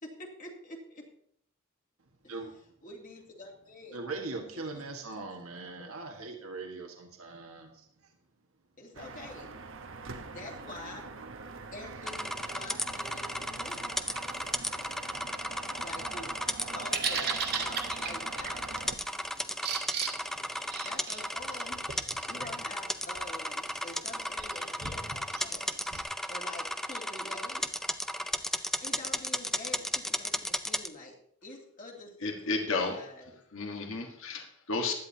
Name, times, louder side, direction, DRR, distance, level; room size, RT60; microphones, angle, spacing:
voice 1, 0.0-1.1 2.2-2.3 2.8-4.0 4.5-4.8 5.2-5.3 8.8-9.6 10.3-11.1 11.7-13.8 15.8-16.3 16.7-18.6 18.9-19.2 20.8-21.8 22.3-25.7 26.3-27.7 28.8-31.1 31.4-33.4, left 2 dB, 40° left, -1 dB, 2.5 m, -46 dB
voice 2, 3.9-7.8, right 3 dB, 85° right, 2 dB, 1.7 m, -40 dB
sound 1, 8.9-18.9, right 4 dB, 65° right, 1.0 m, -44 dB
sound 2, 12.0-30.9, equal, ahead, 0.5 m, -35 dB
Bird vocalization bird call bird song, 16.6-26.0, right 7 dB, 50° right, 1.4 m, -39 dB
voice 3, 32.2-33.0 33.5-34.9, left 3 dB, 65° left, 3 dB, 1.5 m, -32 dB
16.0 x 11.0 x 2.8 m, 0.67 s
head